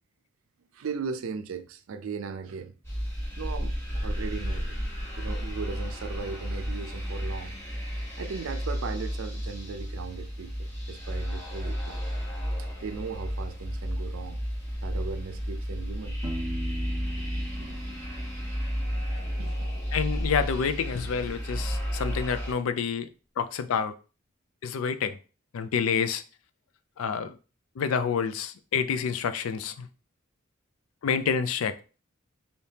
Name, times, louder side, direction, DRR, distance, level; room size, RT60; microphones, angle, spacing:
voice 1, 0.7-2.7 3.4-4.8 5.2-7.5 8.2-12.0 12.8-14.4 14.8-16.2 17.6-18.0 19.4-19.8, right 5 dB, 75° right, 0.4 m, -38 dB
sound 1, 2.8-22.5, equal, 15° left, 1.0 m, -32 dB
Piano, 16.2-19.9, right 1 dB, 15° right, 0.5 m, -40 dB
voice 2, 19.9-23.1 23.4-23.9 24.6-25.2 25.5-26.2 27.0-27.4 27.8-29.9 31.0-31.8, left 6 dB, 85° left, 0.4 m, -28 dB
3.4 x 2.7 x 2.7 m
head